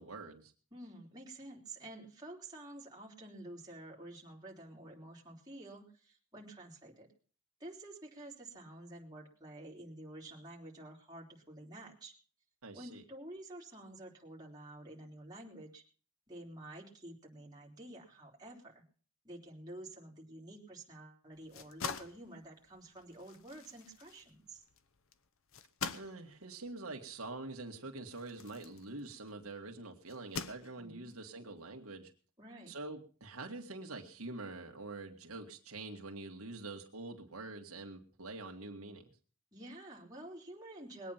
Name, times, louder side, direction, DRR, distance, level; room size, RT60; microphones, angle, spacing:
voice 1, 0.0-0.5 12.6-13.0 25.9-32.1 32.7-39.1, right 2 dB, 80° right, 3 dB, 1.9 m, -45 dB
voice 2, 0.7-7.1 7.6-12.1 12.7-15.8 16.3-18.8 19.2-24.6 30.8-31.1 32.4-32.7 39.5-41.1, right 1 dB, 20° right, -3 dB, 3.5 m, -50 dB
sound 1, 21.3-29.4 30.1-31.1, left 5 dB, 65° left, 1.0 m, -45 dB
21.0 x 9.2 x 5.8 m, 0.40 s
head